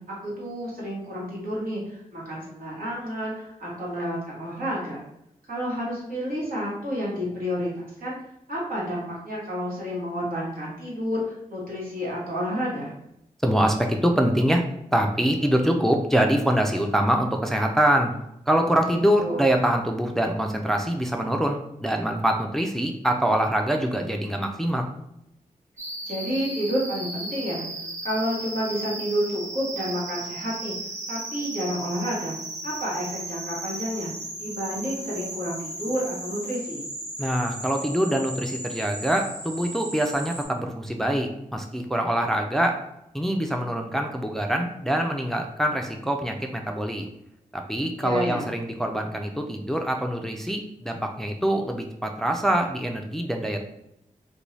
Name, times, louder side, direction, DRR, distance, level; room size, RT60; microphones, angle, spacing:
voice 1, 0.1-5.0 5.5-8.2 8.5-12.9 18.9-19.4 26.0-27.6 28.0-30.7 31.1-32.3 32.6-34.1 34.4-36.8 48.0-48.5, equal, 75° right, -6 dB, 1.2 m, -30 dB
voice 2, 13.4-14.6 14.9-18.1 18.5-24.9 37.2-42.8 43.1-47.1 47.5-53.6, right 1 dB, 5° left, 3 dB, 0.4 m, -24 dB
sound 1, 25.8-40.4, right 1 dB, 50° right, 0.8 m, -36 dB
2.6 x 2.2 x 3.1 m, 0.81 s
cardioid pair, 40°, 15 cm